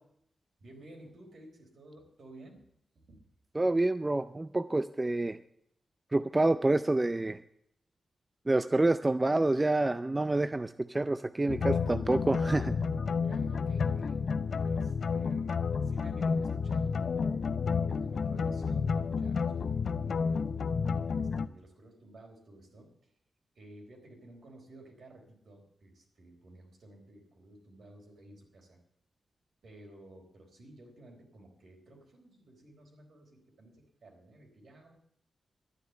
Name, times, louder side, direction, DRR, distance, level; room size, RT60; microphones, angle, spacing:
voice 1, 0.6-2.7 3.1-3.2 13.2-14.2 14.6-15.5 15.8-17.6 17.9-20.4 21.1-22.9 23.6-28.8 29.6-35.0, right 1 dB, 65° right, 2 dB, 4.0 m, -54 dB
voice 2, 3.6-5.4 6.1-7.4 8.5-12.8, right 2 dB, 20° right, 12 dB, 0.4 m, -28 dB
sound 1, 11.5-21.5, left 5 dB, 60° left, 0.6 m, -30 dB
12.0 x 9.6 x 8.0 m, 0.73 s
wide cardioid pair, 110°, 0 cm